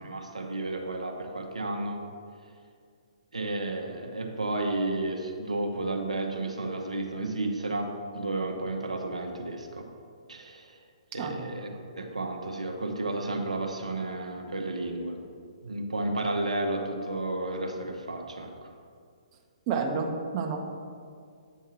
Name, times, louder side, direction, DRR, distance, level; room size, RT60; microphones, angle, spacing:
voice 1, 0.0-2.0 3.3-9.9 10.3-10.8 11.1-15.2 15.6-18.7, right 2 dB, 90° right, 2 dB, 0.7 m, -32 dB
voice 2, 19.7-20.6, right 5 dB, 35° right, 1 dB, 0.7 m, -29 dB
8.1 x 2.8 x 6.1 m, 2.2 s
figure-of-eight pair, 130°, 3 cm